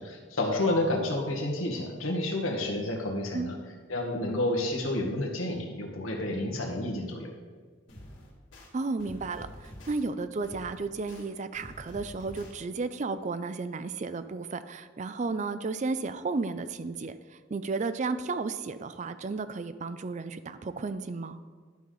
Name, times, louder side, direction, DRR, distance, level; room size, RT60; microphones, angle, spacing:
voice 1, 0.1-3.5 3.9-7.3, left 1 dB, 90° left, 1 dB, 1.6 m, -30 dB
sound 1, 7.9-8.7 9.0-10.0 10.4-11.2 11.5-12.5, equal, 70° left, 2.2 m, -47 dB
voice 2, 8.7-21.4, right 3 dB, 35° right, 12 dB, 0.4 m, -33 dB
11.0 x 3.9 x 6.6 m, 1.5 s
head